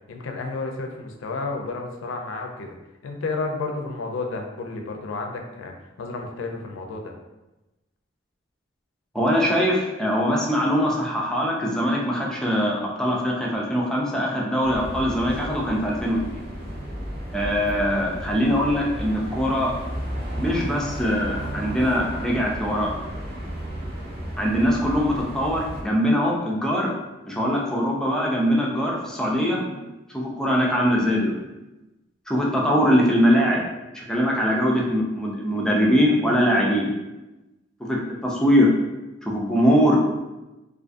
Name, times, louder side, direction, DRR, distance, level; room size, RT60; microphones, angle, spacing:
voice 1, 0.1-2.7 3.0-7.2, left 3 dB, 85° left, 2 dB, 0.4 m, -31 dB
voice 2, 9.1-16.4 17.3-19.7 20.4-22.9 24.4-26.9 27.3-29.8 30.1-31.4 32.3-33.6 33.9-36.9 37.8-38.7 39.2-40.0, equal, 5° left, -3 dB, 0.3 m, -22 dB
sound 1, 14.6-25.8, equal, 55° right, 0.7 m, -33 dB
2.4 x 2.3 x 2.5 m, 1.0 s
head